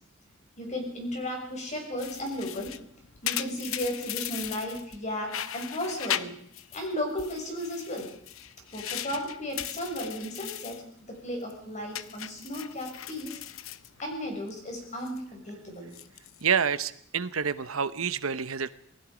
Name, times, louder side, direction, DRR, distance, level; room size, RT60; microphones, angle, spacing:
voice 1, 0.6-2.7 3.2-6.3 6.7-8.1 8.7-13.4 14.0-15.9, left 1 dB, 35° left, 1 dB, 6.4 m, -35 dB
sound 1, 2.0-5.0 5.3-6.9 7.2-10.8 11.2-11.5 11.9-14.5 14.8-15.2 15.8-16.4, left 11 dB, 80° left, 0.8 m, -37 dB
voice 2, 16.4-18.7, right 7 dB, 90° right, 14 dB, 1.0 m, -28 dB
27.5 x 19.5 x 5.1 m, 0.64 s
head